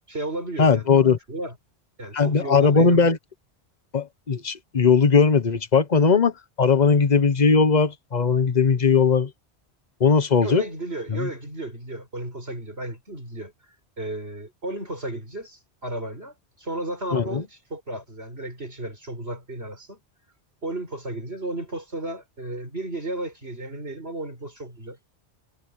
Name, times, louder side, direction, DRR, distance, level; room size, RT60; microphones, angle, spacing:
voice 1, 0.1-1.5 2.0-3.0 10.4-13.5 14.0-20.0 20.6-25.0, right 2 dB, 65° right, 6.9 m, -34 dB
voice 2, 0.6-1.2 2.1-3.2 3.9-6.3 6.6-9.3 10.0-10.6 11.1-11.3 17.1-17.4, left 5 dB, 40° left, 1.3 m, -19 dB
omnidirectional pair, 1.1 m